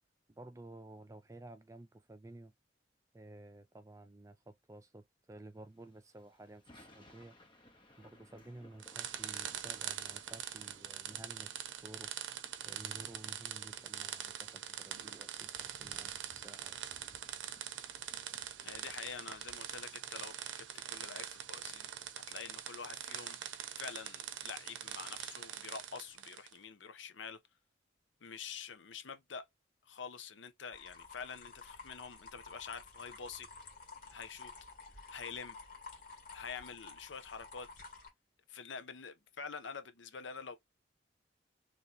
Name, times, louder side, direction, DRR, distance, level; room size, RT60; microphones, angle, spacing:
voice 1, 0.3-2.5 3.1-7.3 8.0-12.1 12.7-16.8, right 2 dB, 15° right, 0.4 m, -53 dB
Thunder / Rain, 5.8-23.3, left 1 dB, 25° left, 0.8 m, -64 dB
sound 1, 8.8-26.6, right 10 dB, 85° right, 0.6 m, -43 dB
voice 2, 18.6-21.9 22.3-23.4 23.8-27.4 28.2-29.5 29.9-33.5 34.1-34.5 35.1-35.6 36.3-37.7 38.5-40.6, left 6 dB, 90° left, 0.7 m, -47 dB
sound 2, 30.7-38.1, left 3 dB, 50° left, 1.5 m, -52 dB
3.2 x 2.8 x 4.0 m
head